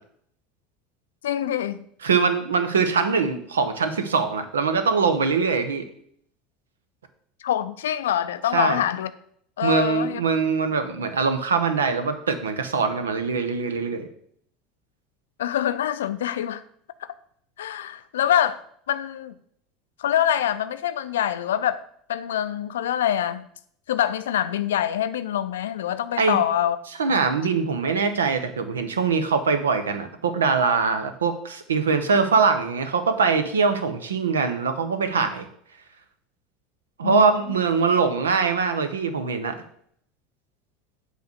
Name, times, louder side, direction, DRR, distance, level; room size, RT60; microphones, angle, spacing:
voice 1, 1.2-1.8 7.4-9.1 9.6-10.2 15.4-16.6 17.6-18.6 18.9-19.3 20.0-21.8 22.1-23.5 23.9-26.8 37.0-37.6, left 10 dB, 70° left, 0.4 m, -25 dB
voice 2, 2.0-5.8 8.5-8.8 9.6-14.1 26.2-26.4 27.0-35.5 37.0-39.6, right 5 dB, 75° right, 0.7 m, -22 dB
8.1 x 3.2 x 6.5 m
figure-of-eight pair, 70°, 0 cm